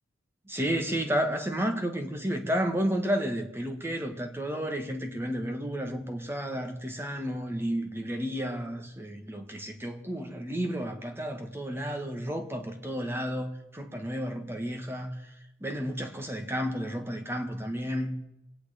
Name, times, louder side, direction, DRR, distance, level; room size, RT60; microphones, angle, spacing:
voice 1, 0.5-15.1 15.6-18.2, equal, 10° right, 1.7 m, -32 dB
25.0 x 8.9 x 5.2 m
head